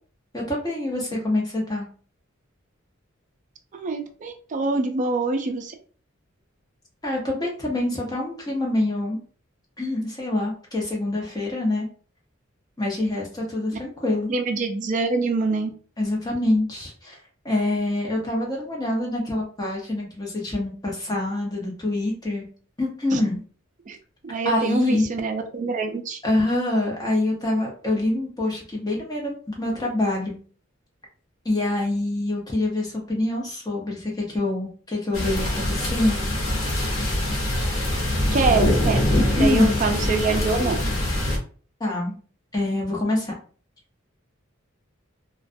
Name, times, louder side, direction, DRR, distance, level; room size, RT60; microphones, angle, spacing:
voice 1, 0.3-1.9 7.0-9.2 9.8-11.9 12.8-14.3 16.0-17.2 17.4-22.4 22.8-23.4 24.4-25.0 26.2-30.4 31.4-36.2 39.4-39.8 41.8-42.2 42.5-43.3, left 1 dB, 20° left, -2 dB, 0.8 m, -25 dB
voice 2, 3.7-5.7 14.3-15.7 23.1-23.2 23.9-24.0 24.2-26.2 38.3-39.1 39.4-40.8, right 3 dB, 40° right, 5 dB, 0.4 m, -25 dB
sound 1, 35.1-41.4, left 1 dB, 90° left, 0.8 m, -24 dB
2.4 x 2.2 x 2.5 m, 0.41 s
head